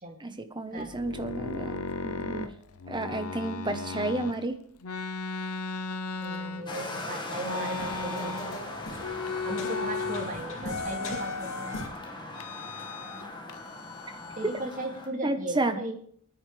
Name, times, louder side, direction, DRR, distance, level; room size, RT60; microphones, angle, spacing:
voice 1, 0.2-2.5 2.9-4.5 15.2-15.8, right 2 dB, 20° right, 8 dB, 1.1 m, -31 dB
sound 1, 0.8-4.4 4.8-6.9 7.4-8.7 9.0-10.3 10.6-11.8 12.3-13.2 13.5-14.7, left 4 dB, 85° left, 0.8 m, -36 dB
a new gospel, 6.1-6.2 6.4-11.9, left 2 dB, 65° left, 2.9 m, -40 dB
voice 2, 6.2-8.6 9.4-11.9 14.4-15.9, right 1 dB, 40° right, 2 dB, 2.5 m, -37 dB
sound 2, 6.7-15.1, left 2 dB, 20° left, 1.8 m, -40 dB
29.0 x 9.8 x 3.4 m, 0.62 s
head